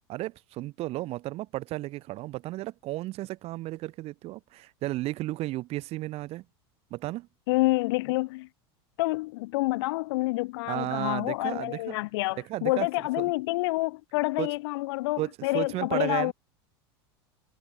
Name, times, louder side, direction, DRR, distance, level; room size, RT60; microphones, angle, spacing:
voice 1, 0.1-6.4 6.9-7.3 10.7-12.0 12.4-12.9 13.2-13.3 14.4-14.5 15.2-16.3, right 17 dB, 50° right, 2.1 m, -33 dB
voice 2, 7.5-8.5 9.0-16.3, left 21 dB, 70° left, 2.4 m, -28 dB
supercardioid pair, 115°, 14 cm